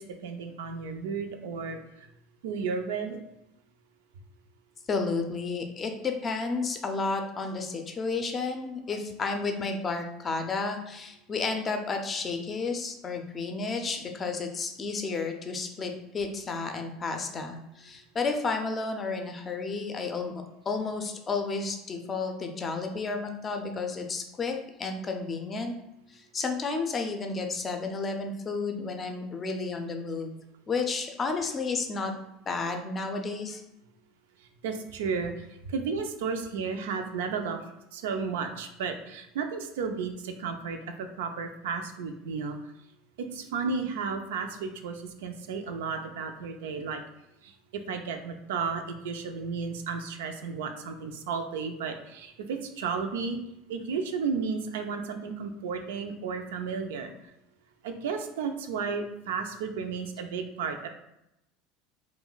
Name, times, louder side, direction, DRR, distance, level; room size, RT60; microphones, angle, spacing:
voice 1, 0.0-2.1 2.4-3.2 34.6-37.7 37.9-42.6 43.2-47.0 47.4-53.4 53.7-57.1 57.8-60.9, right 5 dB, 85° right, 6 dB, 0.3 m, -33 dB
voice 2, 4.9-20.3 20.7-25.7 26.1-30.3 30.7-32.1 32.5-33.6, left 4 dB, 30° left, 4 dB, 0.5 m, -32 dB
2.3 x 2.1 x 3.8 m, 0.85 s
supercardioid pair, 100°, 0 cm